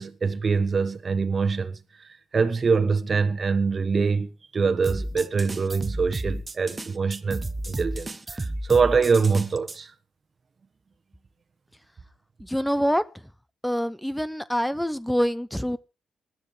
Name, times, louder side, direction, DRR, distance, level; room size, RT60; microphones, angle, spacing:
voice 1, 0.0-1.8 2.3-9.9, right 5 dB, 40° right, 1.3 m, -24 dB
sound 1, 4.8-9.8, right 2 dB, 25° right, 1.1 m, -32 dB
voice 2, 12.4-13.0 13.6-15.8, equal, 5° left, 0.7 m, -25 dB
20.0 x 12.5 x 3.3 m
cardioid pair, 70°, 0 cm